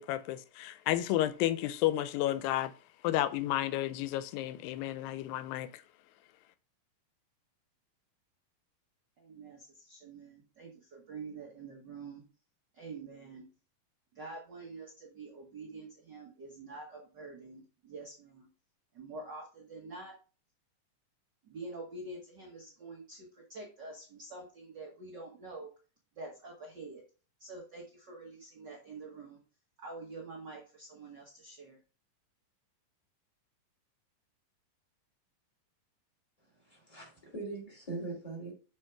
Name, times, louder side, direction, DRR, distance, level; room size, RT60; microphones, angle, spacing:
voice 1, 0.0-2.7 3.0-5.8, left 14 dB, 90° left, 2.3 m, -32 dB
voice 2, 9.2-12.2 12.7-13.5 14.1-18.5 18.9-20.1 21.4-25.7 26.1-27.0 27.4-29.4 29.8-31.8, right 3 dB, 85° right, 0.9 m, -46 dB
voice 3, 36.6-38.5, right 3 dB, 10° left, 2.5 m, -41 dB
6.3 x 4.4 x 4.5 m
omnidirectional pair, 4.0 m